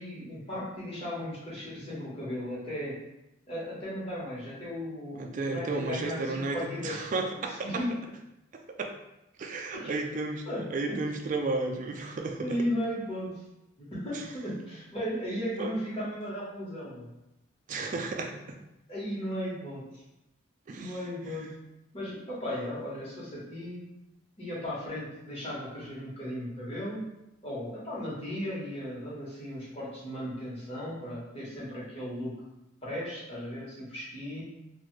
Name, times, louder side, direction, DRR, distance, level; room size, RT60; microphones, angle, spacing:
voice 1, 0.0-3.0 3.5-7.0 7.6-7.9 9.7-10.0 10.5-11.0 12.0-13.4 13.8-17.1 18.9-19.8 20.8-21.5 21.9-23.9 24.4-27.0 27.4-32.3 32.8-34.4, equal, 30° left, -8 dB, 1.0 m, -36 dB
voice 2, 5.2-7.8 8.8-8.9 9.4-12.6 14.1-14.2 15.6-15.7 17.7-18.6 20.7-21.0 21.3-21.4, right 3 dB, 40° right, 3 dB, 0.3 m, -33 dB
2.6 x 2.3 x 3.1 m, 0.90 s
head